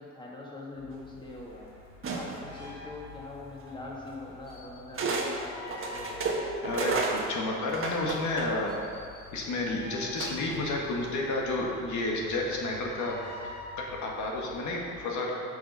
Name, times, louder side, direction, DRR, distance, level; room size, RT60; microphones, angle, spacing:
voice 1, 0.0-1.7 2.1-6.3 14.6-15.1, left 2 dB, 15° left, -3 dB, 1.9 m, -43 dB
sound 1, 0.7-15.0, left 3 dB, 55° left, 1.8 m, -47 dB
sound 2, 2.0-2.5 3.7-3.8 4.9-5.3 5.7-8.8 10.2-10.6, right 3 dB, 45° right, 1.4 m, -32 dB
voice 2, 6.6-8.7 9.3-13.2 13.4-13.5 13.9-15.3, left 2 dB, 75° left, -1 dB, 1.6 m, -31 dB
6.6 x 6.3 x 5.6 m, 2.4 s
cardioid pair, 90°, 30 cm